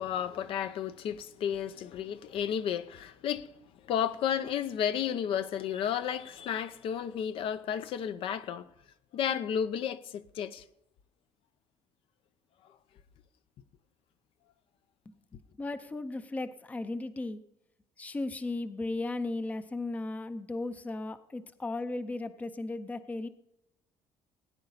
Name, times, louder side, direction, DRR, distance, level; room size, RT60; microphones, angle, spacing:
voice 1, 0.0-3.5 3.9-8.7 9.1-10.6, left 9 dB, 55° left, 0.7 m, -32 dB
voice 2, 15.1-17.4 18.0-23.3, left 2 dB, 15° left, 0.6 m, -36 dB
17.0 x 9.7 x 4.0 m
cardioid pair, 160°, 11 cm